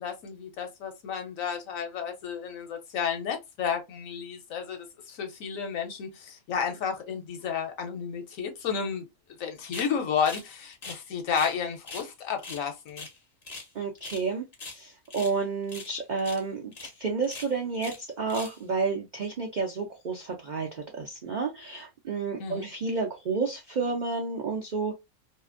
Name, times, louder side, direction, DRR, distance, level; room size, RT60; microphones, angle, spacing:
voice 1, 0.0-9.0 9.4-13.1 22.4-22.7, left 7 dB, 70° left, 1.1 m, -32 dB
sound 1, 9.7-9.9 10.3-10.5 10.7-11.6 11.9-12.1 12.4-13.7 14.0-14.3 14.5-15.4 15.7-16.4 16.7-16.9 17.2-18.0 18.3-18.6, left 3 dB, 40° left, 0.7 m, -42 dB
voice 2, 13.7-14.5 14.7-24.9, right 4 dB, 75° right, 0.4 m, -31 dB
2.7 x 2.4 x 2.4 m
omnidirectional pair, 1.5 m